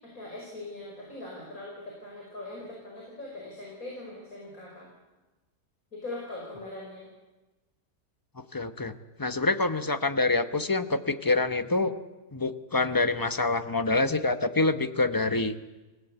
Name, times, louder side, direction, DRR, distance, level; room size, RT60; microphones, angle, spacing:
voice 1, 0.0-4.9 5.9-7.1, left 2 dB, 60° left, -2 dB, 5.9 m, -41 dB
voice 2, 8.4-8.9 9.2-11.9 12.3-15.5, left 3 dB, 15° left, 9 dB, 0.9 m, -26 dB
27.5 x 17.5 x 8.2 m, 1.2 s
omnidirectional pair, 1.6 m